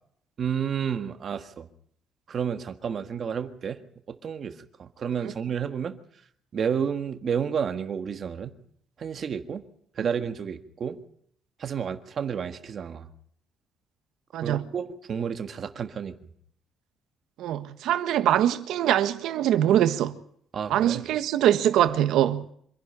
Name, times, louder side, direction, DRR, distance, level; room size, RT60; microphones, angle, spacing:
voice 1, 0.4-1.7 2.3-3.8 4.1-6.0 6.5-8.5 9.0-9.6 10.0-11.0 11.6-13.1 14.4-16.3 20.5-21.0, right 7 dB, 35° right, 1.6 m, -31 dB
voice 2, 14.3-14.7 17.4-20.2 20.7-22.5, right 11 dB, 70° right, 1.6 m, -23 dB
26.0 x 11.5 x 9.9 m
cardioid pair, 175°, 0 cm